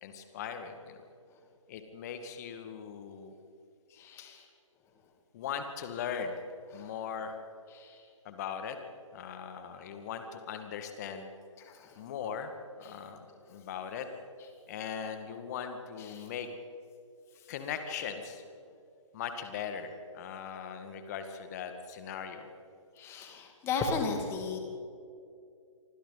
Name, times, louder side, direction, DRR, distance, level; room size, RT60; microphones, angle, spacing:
voice 1, 0.0-1.0 1.7-3.3 5.3-6.4 6.7-7.4 8.2-8.8 9.1-11.3 12.0-12.5 12.8-14.1 14.7-16.5 17.5-18.4 19.1-22.5, left 7 dB, 30° left, 7 dB, 2.1 m, -39 dB
voice 2, 3.9-4.4 6.7-6.9 7.7-8.0 11.7-12.0 16.0-16.3 23.0-24.6, left 4 dB, 15° left, 3 dB, 2.5 m, -35 dB
28.0 x 24.5 x 4.2 m, 2.5 s
figure-of-eight pair, 135°, 17 cm